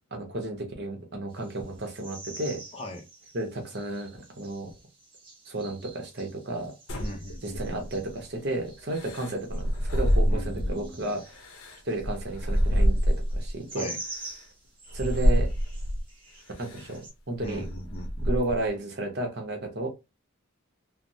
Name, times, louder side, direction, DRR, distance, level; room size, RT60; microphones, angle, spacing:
voice 1, 0.1-2.6 3.3-4.7 5.4-6.7 7.4-11.4 11.8-13.9 14.9-15.5 16.6-17.0 17.3-17.7 18.2-19.9, right 2 dB, 50° right, 2 dB, 0.8 m, -32 dB
sound 1, 1.3-17.1, right 2 dB, 25° right, 1.1 m, -47 dB
voice 2, 2.7-3.0 7.0-7.9 10.2-11.1 13.7-14.0 17.4-18.3, left 1 dB, 25° left, 3 dB, 0.5 m, -39 dB
sound 2, 6.9-8.1 8.9-10.9 11.3-13.5 14.2-14.3 14.9-16.1 16.6-16.9 17.4-18.7, equal, 85° left, 0.7 m, -26 dB
3.3 x 2.0 x 2.6 m, 0.25 s
head